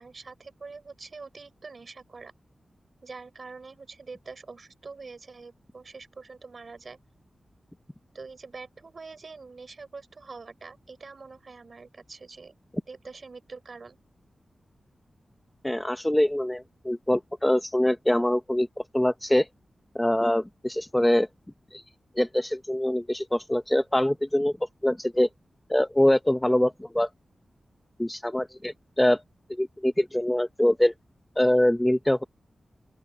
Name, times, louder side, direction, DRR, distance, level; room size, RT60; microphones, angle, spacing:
voice 1, 0.0-2.3 3.0-7.0 8.1-12.5 12.9-14.0, right 4 dB, 45° right, 6.5 m, -44 dB
voice 2, 15.6-18.7 18.9-19.5 19.9-21.3 21.7-21.8 22.2-24.5 24.8-25.3 25.7-27.1 28.0-29.2 29.5-30.9 31.4-32.2, left 1 dB, 10° left, 0.7 m, -24 dB
open air
wide cardioid pair, 150°, 0 cm